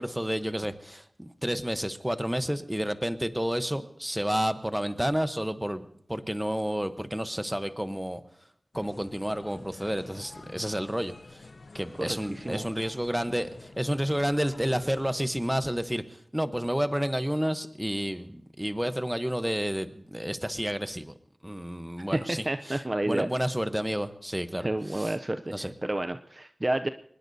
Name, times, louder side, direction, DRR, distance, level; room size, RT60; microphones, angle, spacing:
voice 1, 0.0-8.2 8.7-11.5 11.7-21.1 21.4-22.8 23.1-25.1 25.5-25.7, equal, 10° right, 10 dB, 0.9 m, -30 dB
sound 1, 8.7-15.2, left 3 dB, 70° left, 0.7 m, -49 dB
voice 2, 12.0-12.7 22.1-23.3 24.6-26.9, right 1 dB, 30° right, 9 dB, 0.5 m, -30 dB
24.0 x 20.0 x 2.7 m, 0.68 s
wide cardioid pair, 70°, 0 cm